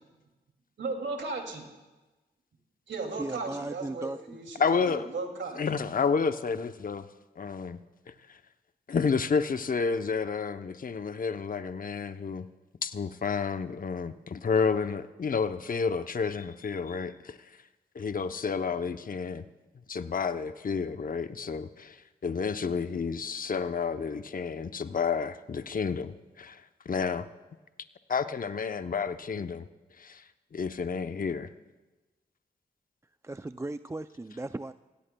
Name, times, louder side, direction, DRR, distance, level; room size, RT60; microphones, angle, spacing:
voice 1, 0.8-1.7 2.9-5.6, right 3 dB, 70° right, 2.5 m, -36 dB
voice 2, 3.2-4.4 33.2-34.7, right 2 dB, 15° right, 0.4 m, -37 dB
voice 3, 4.6-5.1 5.5-7.1 7.4-7.8 8.1-8.4 8.9-12.5 12.8-17.6 17.9-19.4 19.9-27.3 28.1-29.6 30.0-30.2 30.5-31.5, left 5 dB, 45° left, 0.7 m, -30 dB
25.5 x 17.0 x 2.3 m
supercardioid pair, 40°, 19 cm